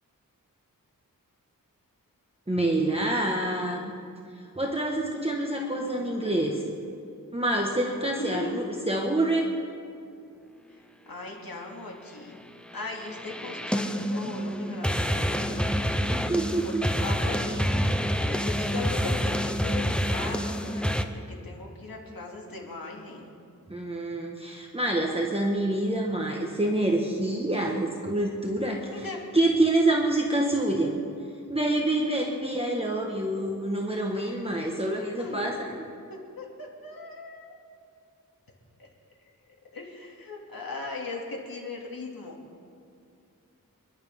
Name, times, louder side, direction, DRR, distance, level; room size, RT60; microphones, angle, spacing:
voice 1, 2.5-3.9 4.6-6.6 7.3-9.5 16.1-16.8 23.7-28.9 29.3-30.9 31.5-35.8, right 1 dB, 15° right, -1 dB, 1.4 m, -27 dB
voice 2, 5.6-6.6 8.2-8.6 10.7-10.8 11.1-12.4 12.7-15.8 16.6-21.1 21.4-23.3 28.9-29.2 31.9-32.4 35.2-35.5 36.1-37.5 38.8-38.9 39.7-42.4, left 3 dB, 85° left, -1 dB, 2.5 m, -39 dB
sound 1, 12.7-21.0, equal, 5° left, 0.7 m, -27 dB
27.0 x 12.0 x 3.6 m, 2.4 s
wide cardioid pair, 100°, 34 cm